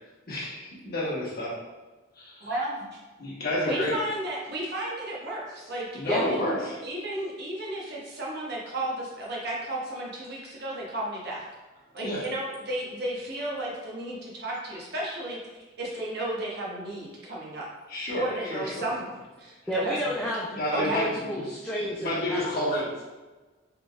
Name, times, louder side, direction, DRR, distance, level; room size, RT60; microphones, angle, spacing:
voice 1, 0.3-1.5 2.1-2.5 3.2-4.0 5.9-6.8 12.0-12.2 17.9-18.8 20.5-21.4 21.8-22.9, left 1 dB, 50° left, -7 dB, 1.2 m, -30 dB
voice 2, 2.4-2.8 3.7-6.5 6.8-11.4 11.9-17.7 18.2-20.3 20.7-21.0, right 1 dB, 50° right, -4 dB, 0.9 m, -33 dB
voice 3, 19.7-20.5 20.8-22.7, equal, 5° left, -6 dB, 0.3 m, -30 dB
4.0 x 3.2 x 2.3 m, 1.2 s
head